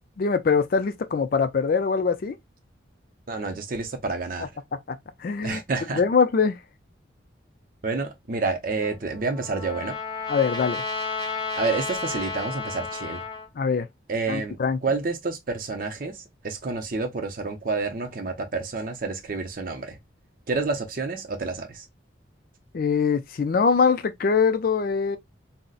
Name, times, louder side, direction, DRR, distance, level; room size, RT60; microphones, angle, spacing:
voice 1, 0.0-2.4 5.2-5.6 5.9-6.6 10.3-10.8 13.6-13.9 14.3-14.8 22.7-25.2, left 5 dB, 50° left, 0.4 m, -23 dB
voice 2, 3.3-4.5 5.4-6.0 7.8-10.0 11.6-13.2 14.1-20.0 20.5-21.9, right 3 dB, 45° right, 0.6 m, -29 dB
Trumpet, 8.8-13.5, left 4 dB, 20° left, 0.7 m, -32 dB
3.8 x 2.0 x 2.3 m
head